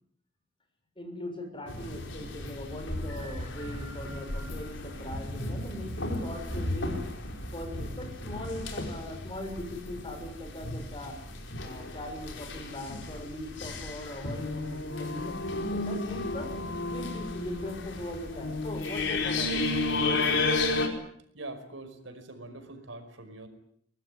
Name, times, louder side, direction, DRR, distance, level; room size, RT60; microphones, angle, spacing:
voice 1, 1.0-7.0 7.5-11.2 11.6-16.5 16.9-19.6, left 1 dB, 25° left, 6 dB, 6.3 m, -40 dB
sound 1, 1.7-20.9, left 2 dB, 65° left, 4.9 m, -33 dB
voice 2, 21.3-23.5, right 2 dB, 75° right, 9 dB, 5.3 m, -43 dB
23.5 x 20.5 x 9.8 m, 0.67 s
head